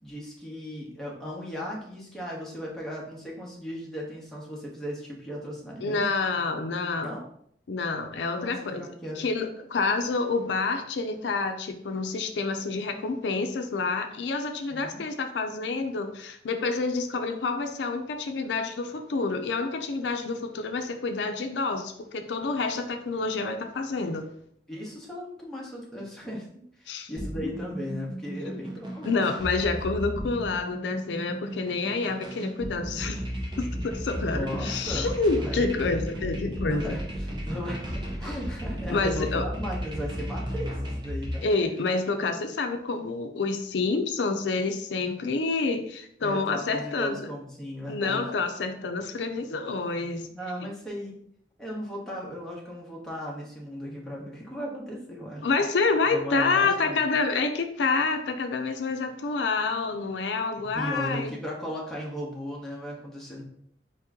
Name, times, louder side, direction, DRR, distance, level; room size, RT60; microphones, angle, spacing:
voice 1, 0.0-6.0 7.0-7.2 8.3-9.2 14.7-15.0 24.7-26.5 26.8-29.3 34.2-35.1 35.4-35.6 36.6-41.4 46.2-48.2 50.3-51.2 51.6-55.5 56.1-57.0 60.6-63.4, equal, 5° left, -4 dB, 1.1 m, -36 dB
voice 2, 5.8-7.1 7.7-8.9 9.2-24.3 26.9-27.1 28.5-28.6 29.0-33.2 33.6-37.0 38.9-39.4 41.4-47.3 47.9-50.3 55.4-61.3, left 3 dB, 80° left, 7 dB, 0.5 m, -28 dB
sound 1, 27.2-42.1, equal, 25° right, 0.8 m, -34 dB
4.5 x 2.9 x 3.6 m, 0.67 s
head